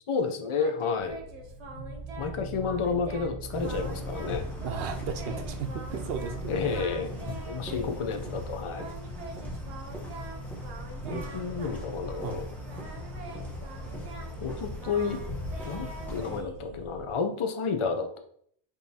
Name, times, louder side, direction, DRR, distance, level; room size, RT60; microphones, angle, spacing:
voice 1, 0.1-1.2 2.2-4.4 6.5-7.1 7.5-8.9 11.1-12.5 14.4-15.2 15.7-18.2, left 5 dB, 50° left, 6 dB, 0.3 m, -31 dB
Singing, 0.5-2.4 2.6-3.3 3.6-6.4 6.7-8.1 8.7-12.3 12.6-17.1, right 2 dB, 85° right, 1.1 m, -45 dB
sound 1, 1.0-17.1, right 1 dB, 80° left, 1.6 m, -43 dB
sound 2, 3.5-16.4, left 1 dB, ahead, 0.8 m, -39 dB
voice 2, 4.6-6.5 11.0-11.3 12.2-12.4, right 6 dB, 65° right, 7 dB, 0.7 m, -35 dB
5.2 x 3.1 x 2.7 m, 0.64 s
omnidirectional pair, 1.1 m